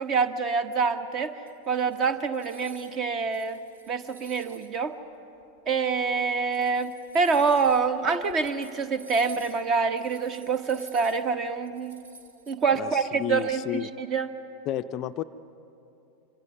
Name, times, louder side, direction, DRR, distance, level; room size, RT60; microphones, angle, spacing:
voice 1, 0.0-1.3 1.7-3.6 3.9-4.9 5.6-11.9 12.5-14.3, right 5 dB, 30° right, 10 dB, 1.2 m, -26 dB
sound 1, 1.5-3.0 3.3-4.8 5.4-5.5 6.3-12.5, right 2 dB, 65° right, 2.2 m, -51 dB
voice 2, 12.8-13.9 14.7-15.2, left 11 dB, 35° left, 11 dB, 0.5 m, -31 dB
26.0 x 26.0 x 5.5 m, 2.7 s
figure-of-eight pair, 90°, 0 cm